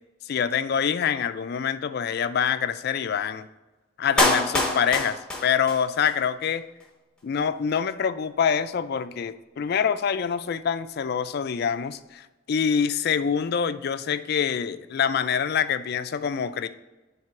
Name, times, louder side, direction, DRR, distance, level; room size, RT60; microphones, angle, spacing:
voice 1, 0.3-3.4 4.0-6.6 7.2-16.7, left 7 dB, 50° left, 12 dB, 0.3 m, -25 dB
Clapping, 4.2-6.2 6.4-6.5, left 1 dB, 5° left, 0.8 m, -25 dB
7.5 x 3.3 x 5.9 m, 1.1 s
head